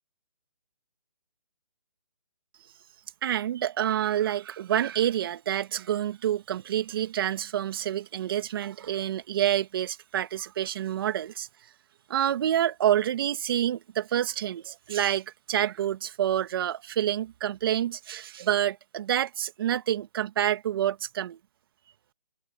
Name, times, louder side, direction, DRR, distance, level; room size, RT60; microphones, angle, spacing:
voice 1, 3.2-11.5 12.1-21.4, right 11 dB, 35° right, 2.3 m, -28 dB
hypercardioid pair, 160°, 21 cm